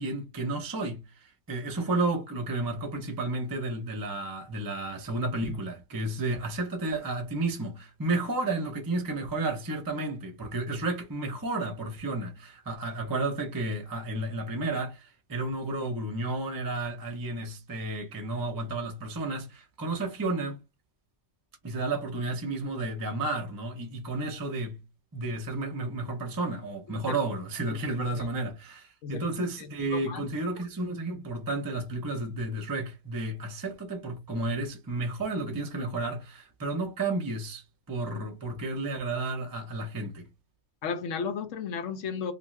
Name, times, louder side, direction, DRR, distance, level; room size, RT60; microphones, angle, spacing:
voice 1, 0.0-20.6 21.6-24.8 25.1-40.3, right 2 dB, 25° right, 0.5 m, -32 dB
voice 2, 29.0-30.3 40.8-42.3, left 6 dB, 85° left, 1.0 m, -35 dB
2.5 x 2.4 x 3.1 m
omnidirectional pair, 1.3 m